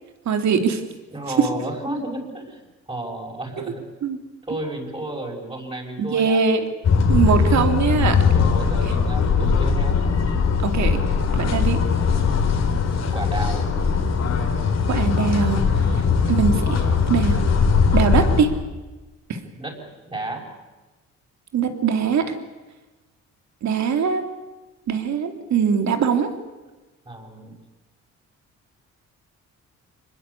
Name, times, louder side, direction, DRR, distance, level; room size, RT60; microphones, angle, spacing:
voice 1, 0.2-0.8 1.4-1.5 3.6-3.7 4.0-4.2 6.0-6.6 7.1-8.2 10.6-11.0 11.3-11.8 14.9-16.0 16.3-16.8 17.1-17.4 17.9-18.5 19.3-19.4 21.5-22.3 23.6-24.2 24.9-26.3, right 6 dB, 65° right, 6 dB, 2.9 m, -21 dB
voice 2, 1.1-3.8 4.5-6.4 7.6-7.7 8.3-10.0 10.8-11.1 13.1-13.6 19.6-19.8 20.1-20.4 27.0-27.5, right 2 dB, 20° right, -2 dB, 6.6 m, -32 dB
sound 1, 6.8-18.4, left 5 dB, 60° left, 3.9 m, -20 dB
25.5 x 21.0 x 8.4 m, 1.2 s
cardioid pair, 90°, 30 cm